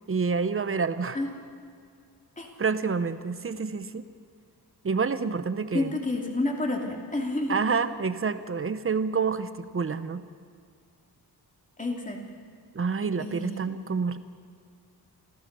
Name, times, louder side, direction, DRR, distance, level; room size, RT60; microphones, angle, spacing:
voice 1, 0.1-1.2 2.6-4.0 4.8-5.9 7.5-10.2 12.7-14.2, right 5 dB, 35° right, 12 dB, 0.8 m, -28 dB
voice 2, 5.7-7.6 11.8-12.2 13.2-13.7, left 2 dB, 20° left, 1 dB, 2.9 m, -29 dB
28.0 x 15.5 x 6.9 m, 2.3 s
wide cardioid pair, 170°, 39 cm